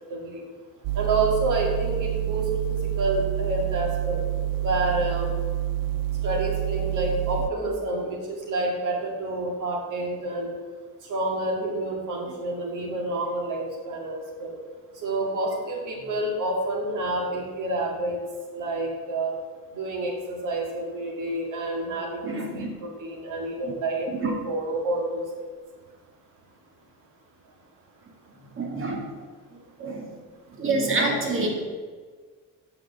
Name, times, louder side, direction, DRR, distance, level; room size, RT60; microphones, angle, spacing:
voice 1, 0.1-0.4 0.9-4.2 4.6-5.3 6.2-10.5 11.1-14.5 15.0-18.2 18.6-19.4 19.7-25.2, right 2 dB, 65° right, 0 dB, 2.6 m, -28 dB
sound 1, 0.8-7.5, right 13 dB, 80° right, 0.5 m, -28 dB
voice 2, 22.2-22.7 23.6-23.7 24.1-24.3 28.6-29.1 29.8-30.1 30.6-31.5, right 3 dB, 40° right, 0 dB, 2.1 m, -27 dB
8.5 x 5.7 x 6.7 m, 1.5 s
cardioid pair, 140°, 34 cm